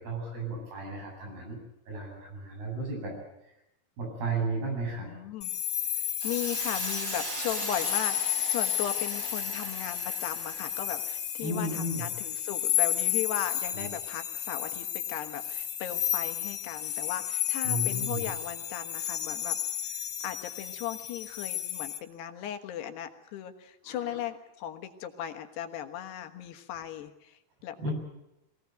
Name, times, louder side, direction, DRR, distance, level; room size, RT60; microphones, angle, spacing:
voice 1, 0.0-1.6 1.9-3.1 4.0-5.1 11.4-12.1 13.7-13.9 17.6-18.3 23.9-24.2 27.8-27.9, right 2 dB, 65° right, 0 dB, 10.0 m, -34 dB
voice 2, 5.0-5.5 6.0-19.6 20.2-27.9, left 10 dB, 80° left, 7 dB, 3.4 m, -37 dB
sound 1, 5.4-22.0, left 11 dB, 50° left, 2.0 m, -32 dB
Hiss, 6.2-10.9, right 4 dB, 45° right, 1.4 m, -40 dB
23.0 x 17.5 x 9.3 m, 0.89 s
omnidirectional pair, 4.8 m